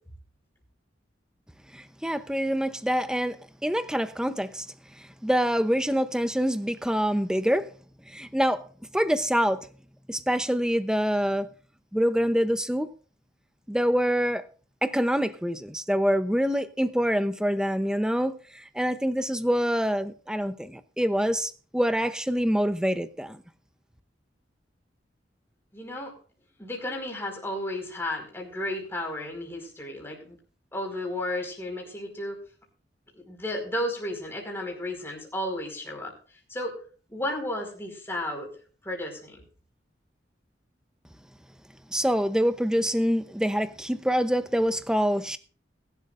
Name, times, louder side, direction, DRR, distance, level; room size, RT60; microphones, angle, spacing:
voice 1, 1.7-3.4 3.6-4.7 5.2-7.7 8.1-8.6 8.9-9.6 10.1-11.5 11.9-12.9 13.7-14.4 14.8-23.4 41.9-45.4, equal, 5° right, 0.8 m, -25 dB
voice 2, 25.7-26.1 26.6-30.4 30.7-32.4 33.1-36.1 36.5-36.8 37.1-38.5 38.8-39.4, left 1 dB, 15° left, 5.1 m, -33 dB
21.5 x 12.0 x 2.6 m
head